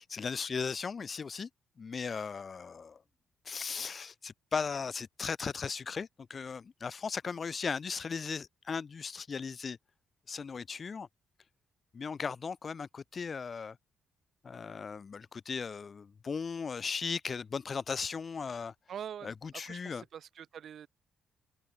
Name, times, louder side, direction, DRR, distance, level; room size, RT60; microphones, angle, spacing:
voice 1, 0.0-1.5 1.8-3.0 3.5-9.8 10.3-11.1 11.9-13.8 14.4-18.7 19.2-20.0, left 5 dB, 40° left, 2.3 m, -37 dB
voice 2, 18.9-20.9, right 9 dB, 60° right, 4.0 m, -44 dB
cardioid pair, 90°, 0 cm